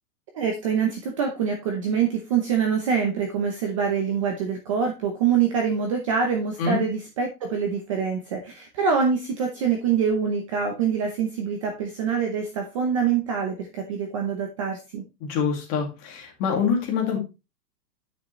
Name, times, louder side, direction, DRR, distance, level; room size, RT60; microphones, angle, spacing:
voice 1, 0.3-15.0, right 6 dB, 20° right, 3 dB, 0.7 m, -25 dB
voice 2, 15.2-17.2, left 6 dB, 25° left, 1 dB, 2.2 m, -25 dB
9.4 x 5.8 x 3.1 m, 0.27 s
hypercardioid pair, 170°, 48 cm